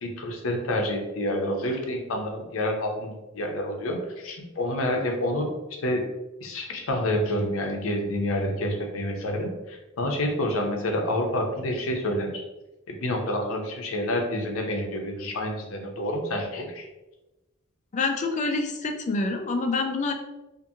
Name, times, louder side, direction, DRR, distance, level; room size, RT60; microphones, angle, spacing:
voice 1, 0.0-5.5 5.8-6.0 6.4-12.4 12.9-16.8, left 1 dB, 80° left, 2 dB, 0.6 m, -28 dB
voice 2, 17.9-20.1, left 3 dB, 35° left, 5 dB, 0.3 m, -26 dB
2.5 x 2.5 x 2.7 m, 1.0 s
head